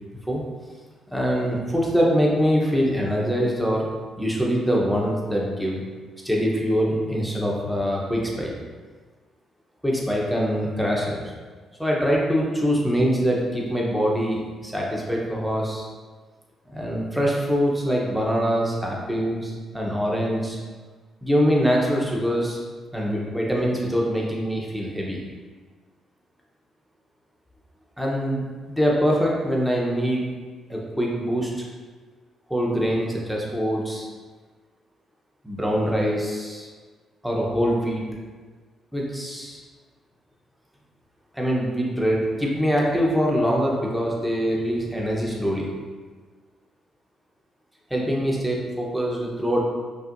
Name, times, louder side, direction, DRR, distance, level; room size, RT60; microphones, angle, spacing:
voice 1, 1.1-3.9 4.2-5.8 6.2-8.5 9.8-11.2 11.8-15.9 16.7-20.6 21.2-22.6 22.9-25.2 28.0-30.2 30.7-31.7 32.5-34.0 35.4-36.7 37.2-38.1 38.9-39.6 41.3-45.7 47.9-49.6, equal, 5° right, -3 dB, 0.9 m, -24 dB
5.6 x 2.7 x 2.6 m, 1.4 s
cardioid pair, 90°, 0 cm